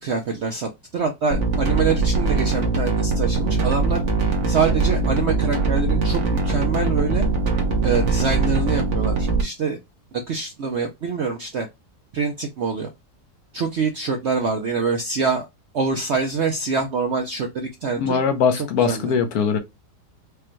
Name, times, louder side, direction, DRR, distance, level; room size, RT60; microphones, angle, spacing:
voice 1, 0.0-4.0 4.5-7.2 7.8-9.8 10.1-11.7 12.1-12.9 13.5-15.5 15.7-18.2 18.5-19.1, right 4 dB, 65° right, 0.6 m, -25 dB
sound 1, 1.3-9.4, right 3 dB, 50° right, 1.2 m, -21 dB
voice 2, 17.9-19.6, left 6 dB, 70° left, 1.1 m, -21 dB
5.0 x 2.2 x 3.0 m
omnidirectional pair, 1.8 m